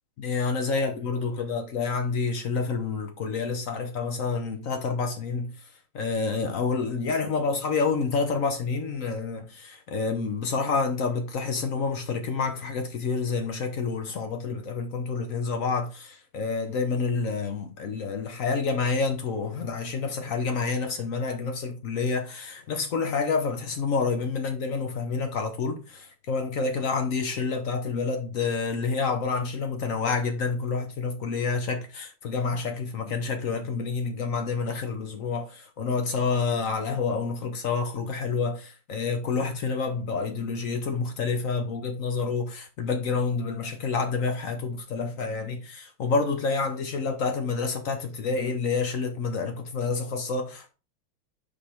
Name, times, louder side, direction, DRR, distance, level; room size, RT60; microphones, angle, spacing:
voice 1, 0.2-5.5 5.9-50.7, left 4 dB, 55° left, 0.9 m, -28 dB
5.3 x 4.3 x 4.4 m
omnidirectional pair, 2.3 m